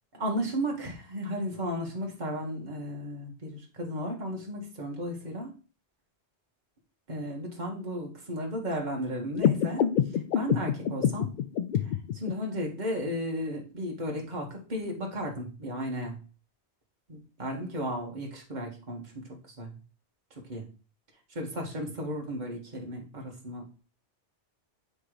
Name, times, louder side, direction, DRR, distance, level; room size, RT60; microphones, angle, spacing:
voice 1, 0.1-5.5 7.1-11.3 11.8-16.2 17.1-19.7 20.4-20.7 21.3-23.7, equal, 40° right, 0 dB, 1.7 m, -34 dB
sound 1, 9.3-12.3, left 9 dB, 60° left, 0.6 m, -27 dB
8.4 x 3.8 x 4.9 m, 0.36 s
omnidirectional pair, 1.2 m